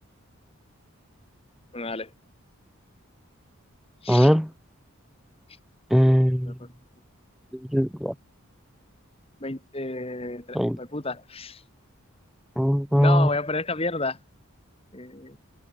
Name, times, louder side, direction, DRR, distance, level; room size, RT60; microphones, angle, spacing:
voice 1, 1.7-2.1 4.0-4.3 6.5-6.7 9.4-11.6 13.0-14.2 14.9-15.4, left 3 dB, 25° left, 1.7 m, -31 dB
voice 2, 4.1-4.5 5.9-6.5 7.7-8.1 10.5-10.8 12.6-13.3, equal, ahead, 1.2 m, -20 dB
head